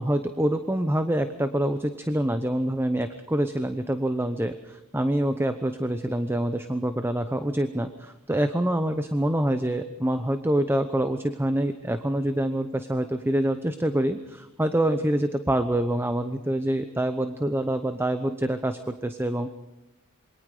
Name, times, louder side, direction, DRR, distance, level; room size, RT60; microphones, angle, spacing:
voice 1, 0.0-19.5, right 1 dB, 10° right, 9 dB, 0.8 m, -26 dB
27.5 x 22.5 x 5.0 m, 0.91 s
head